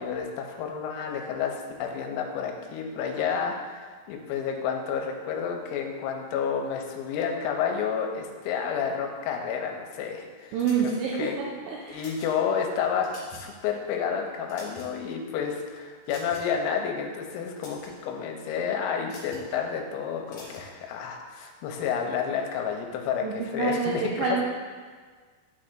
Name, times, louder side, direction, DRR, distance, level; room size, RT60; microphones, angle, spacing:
voice 1, 0.0-10.6 10.8-10.9 11.2-11.3 11.9-13.1 13.4-24.4, left 7 dB, 90° left, 2 dB, 3.2 m, -30 dB
voice 2, 10.5-12.0 23.2-24.4, right 5 dB, 85° right, -3 dB, 2.6 m, -28 dB
sound 1, 10.6-11.3 11.8-12.3 12.8-13.5 13.8-14.0 14.4-15.1 16.1-16.6 17.4-17.9 19.0-19.5 20.3-20.7, left 2 dB, 60° left, 2.2 m, -47 dB
11.5 x 4.4 x 2.5 m, 1.5 s
omnidirectional pair, 5.9 m